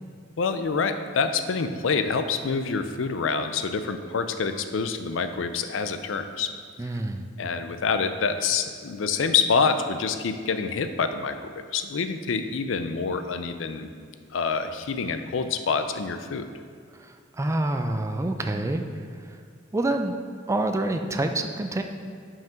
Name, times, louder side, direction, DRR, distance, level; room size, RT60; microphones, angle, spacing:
voice 1, 0.4-6.5 7.4-13.9 14.3-16.4, left 5 dB, 75° left, 9 dB, 0.5 m, -26 dB
voice 2, 6.8-7.3 17.0-18.8 19.2-19.4 19.7-20.2 20.5-21.8, right 2 dB, 15° right, 6 dB, 0.4 m, -27 dB
5.7 x 5.4 x 5.1 m, 2.2 s
head